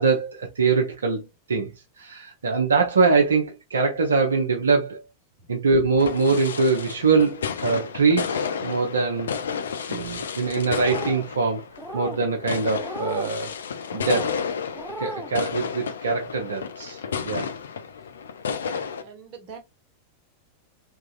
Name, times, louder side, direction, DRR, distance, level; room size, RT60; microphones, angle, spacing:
voice 1, 0.0-1.7 2.0-5.0 5.5-9.3 9.9-11.7 11.9-13.5 13.9-14.4 15.0-17.5, right 4 dB, 70° right, 0.6 m, -23 dB
sound 1, 6.0-19.0, left 6 dB, 65° left, 0.4 m, -32 dB
sound 2, 10.7-11.3 11.8-12.2 12.8-13.3 13.9-14.3 14.7-15.3, right 1 dB, 5° right, 0.5 m, -36 dB
voice 2, 18.6-19.6, right 6 dB, 40° right, 1.1 m, -44 dB
3.6 x 2.9 x 2.3 m
figure-of-eight pair, 90°, 0 cm